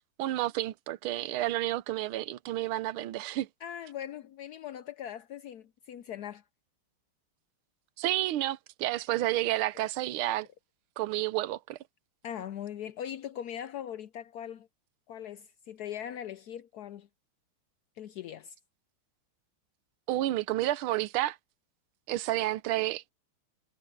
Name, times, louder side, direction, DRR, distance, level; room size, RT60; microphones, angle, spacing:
voice 1, 0.2-3.5 8.0-10.5 11.0-11.8 20.1-21.4 22.1-23.0, right 15 dB, 80° right, 1.6 m, -30 dB
voice 2, 3.6-6.4 12.2-14.7 15.1-17.1 18.0-18.5, left 10 dB, 80° left, 0.8 m, -40 dB
omnidirectional pair, 2.3 m